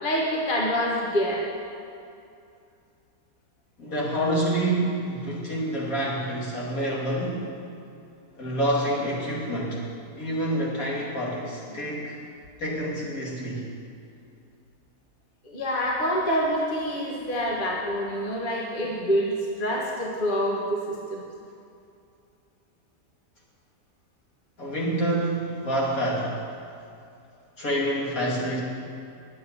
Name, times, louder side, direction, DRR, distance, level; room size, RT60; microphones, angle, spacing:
voice 1, 0.0-1.5 15.4-21.2, equal, 35° left, -3 dB, 1.6 m, -26 dB
voice 2, 3.8-7.5 8.4-9.8 10.2-12.2 12.6-13.7 24.6-26.4 27.6-28.6, right 1 dB, 60° left, -5 dB, 3.0 m, -27 dB
9.7 x 8.7 x 10.0 m, 2.5 s
omnidirectional pair, 1.7 m